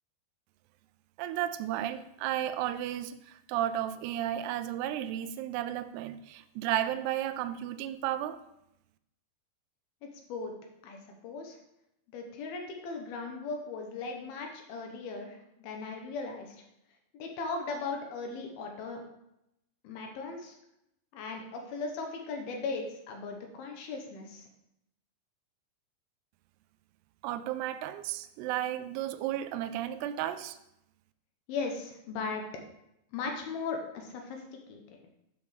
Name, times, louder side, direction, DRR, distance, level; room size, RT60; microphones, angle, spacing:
voice 1, 1.2-8.4 27.2-30.6, right 12 dB, 85° right, 11 dB, 2.4 m, -33 dB
voice 2, 10.0-10.5 10.8-11.6 12.1-16.6 17.1-19.0 19.8-20.6 21.1-24.5 31.5-32.4 33.1-34.8, left 4 dB, 75° left, 3 dB, 2.6 m, -38 dB
8.2 x 6.9 x 3.2 m, 0.82 s
omnidirectional pair, 5.0 m